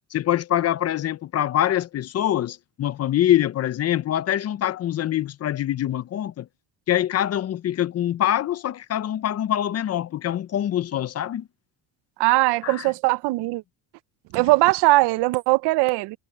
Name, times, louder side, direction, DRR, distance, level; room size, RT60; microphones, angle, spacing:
voice 1, 0.1-6.5 6.9-11.5 12.6-12.9, left 12 dB, 40° left, 0.7 m, -24 dB
voice 2, 12.2-13.6 14.3-16.2, right 21 dB, 85° right, 0.8 m, -20 dB
cardioid pair, 130°, 40 cm